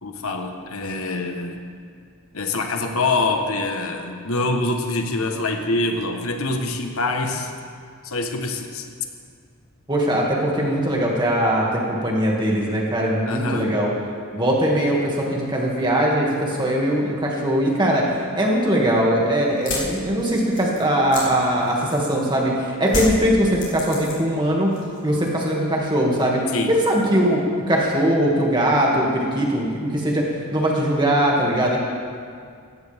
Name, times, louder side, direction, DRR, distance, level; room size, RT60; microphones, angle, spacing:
voice 1, 0.0-1.6 2.3-7.5 8.0-8.9 13.3-13.7 26.5-26.7, left 2 dB, 80° left, 4 dB, 1.3 m, -25 dB
voice 2, 9.9-13.9 14.3-18.0 18.3-24.7 25.0-26.4 26.7-27.4 27.7-30.2 30.5-31.8, right 1 dB, 20° right, -3 dB, 2.3 m, -20 dB
sound 1, 19.5-22.2 22.9-24.4 24.7-25.3, left 3 dB, 55° left, 3.8 m, -30 dB
17.5 x 15.5 x 3.6 m, 2.2 s
head